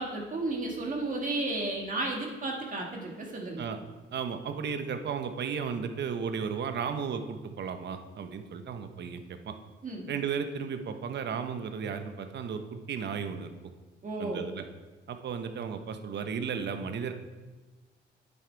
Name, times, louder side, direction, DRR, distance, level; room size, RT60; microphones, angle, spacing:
voice 1, 0.0-3.7 9.8-10.1 14.0-14.5, right 2 dB, 40° right, -1 dB, 2.0 m, -33 dB
voice 2, 4.1-9.6 10.1-13.5 14.2-14.6 15.1-17.1, right 6 dB, 60° right, 8 dB, 1.0 m, -34 dB
9.1 x 8.2 x 4.6 m, 1.3 s
cardioid pair, 90°, 20 cm